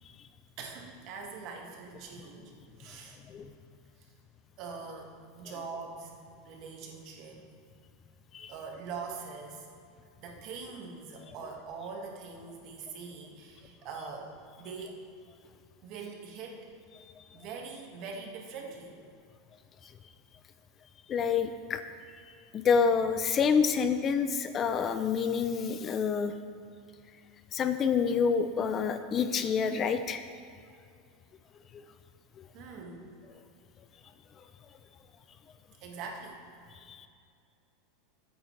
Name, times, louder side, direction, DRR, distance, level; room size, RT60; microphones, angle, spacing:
voice 1, 0.6-2.5 2.8-3.2 4.6-6.1 6.4-7.4 8.5-9.7 10.2-15.0 15.8-16.7 17.3-19.0 32.5-33.1 35.8-36.4, right 5 dB, 50° right, 1 dB, 1.7 m, -43 dB
voice 2, 21.1-21.8 22.5-26.3 27.5-30.2 32.4-32.5 36.9-37.1, left 6 dB, 30° left, 10 dB, 0.5 m, -27 dB
15.0 x 8.9 x 3.3 m, 2.4 s
supercardioid pair, 135°, 0 cm